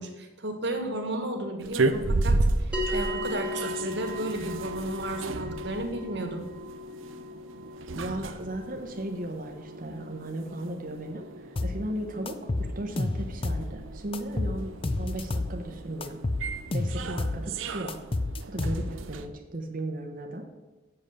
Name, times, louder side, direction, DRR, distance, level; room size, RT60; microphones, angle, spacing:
voice 1, 0.0-6.5, right 2 dB, 60° right, 4 dB, 1.4 m, -34 dB
sound 1, 1.6-19.3, right 2 dB, 80° right, 0.6 m, -34 dB
sound 2, 2.7-13.3, left 2 dB, 5° right, 1.4 m, -38 dB
voice 2, 7.9-14.7 15.0-16.2 16.7-18.0 18.5-20.5, right 1 dB, 45° right, 3 dB, 0.8 m, -36 dB
sound 3, 11.6-11.8 12.3-13.7 14.1-15.6 16.0-17.4 17.9-19.1, left 2 dB, 25° left, 0.4 m, -30 dB
7.8 x 6.7 x 6.5 m, 1.2 s
head